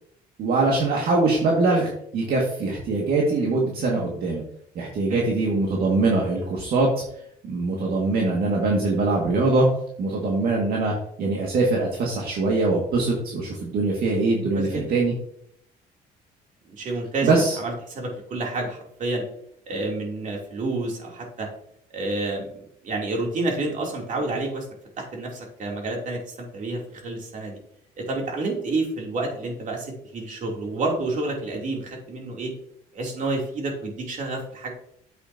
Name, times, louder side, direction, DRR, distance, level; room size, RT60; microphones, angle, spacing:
voice 1, 0.4-4.4 4.8-6.9 7.4-9.7 10.0-15.1 17.2-17.6, right 3 dB, 65° right, -2 dB, 2.1 m, -22 dB
voice 2, 14.5-14.9 16.7-17.3 17.6-19.2 19.7-21.5 21.9-24.7 25.0-27.6 28.0-32.5 32.9-34.7, right 2 dB, 50° right, 0 dB, 3.1 m, -29 dB
9.5 x 8.1 x 2.8 m, 0.70 s
cardioid pair, 110°, 17 cm